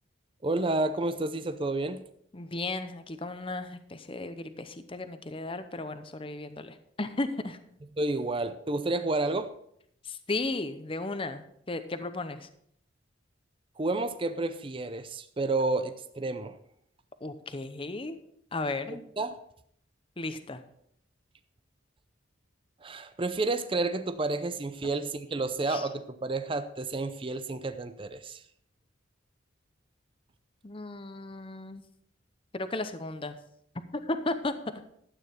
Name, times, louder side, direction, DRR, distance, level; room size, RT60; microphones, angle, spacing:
voice 1, 0.4-2.1 8.0-9.5 13.8-16.6 18.9-19.4 22.8-28.4, right 2 dB, 30° right, 10 dB, 0.5 m, -30 dB
voice 2, 2.3-7.6 10.0-12.5 17.2-18.2 18.5-19.0 20.2-20.6 25.7-25.9 30.6-31.8 32.5-33.4 33.9-34.5, left 2 dB, 30° left, 10 dB, 0.7 m, -35 dB
12.5 x 8.9 x 4.4 m, 0.69 s
head